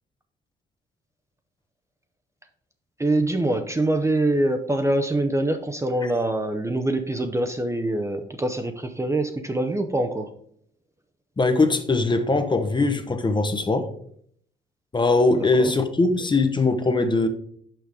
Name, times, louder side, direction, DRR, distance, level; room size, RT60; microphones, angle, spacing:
voice 1, 3.0-10.3 15.3-15.7, right 1 dB, 15° right, 0.6 m, -24 dB
voice 2, 11.4-13.9 14.9-17.3, left 3 dB, 25° left, 0.8 m, -21 dB
5.9 x 5.1 x 4.8 m
cardioid pair, 90°, 20 cm